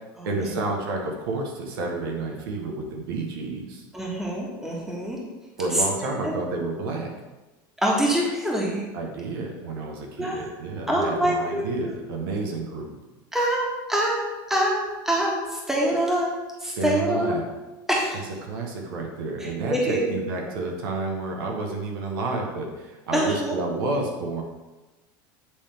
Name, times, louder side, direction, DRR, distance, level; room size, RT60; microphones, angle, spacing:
voice 1, 0.2-3.8 5.6-7.1 8.9-13.0 16.6-17.5 18.4-24.4, right 3 dB, 80° right, 1 dB, 1.2 m, -30 dB
voice 2, 3.9-5.2 5.7-5.8 6.2-6.3 7.8-8.8 10.2-10.5 10.9-11.9 13.3-13.6 13.9-14.2 14.5-14.8 15.0-16.3 16.6-17.4 17.9-18.2 19.4-20.1 23.1-23.5, right 1 dB, 5° right, -3 dB, 1.6 m, -24 dB
8.4 x 3.4 x 3.5 m, 1.1 s
supercardioid pair, 115°, 12 cm